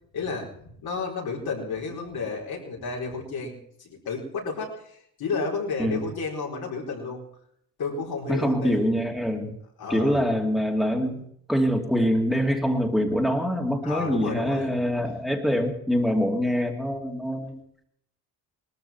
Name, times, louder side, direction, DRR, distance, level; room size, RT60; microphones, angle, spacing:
voice 1, 0.1-7.2 7.8-8.9 9.8-10.2 13.8-14.7, left 4 dB, 70° left, -1 dB, 4.6 m, -32 dB
voice 2, 8.3-9.5 9.9-17.6, equal, ahead, 1 dB, 2.8 m, -24 dB
19.0 x 13.5 x 4.5 m, 0.69 s
supercardioid pair, 65°, 39 cm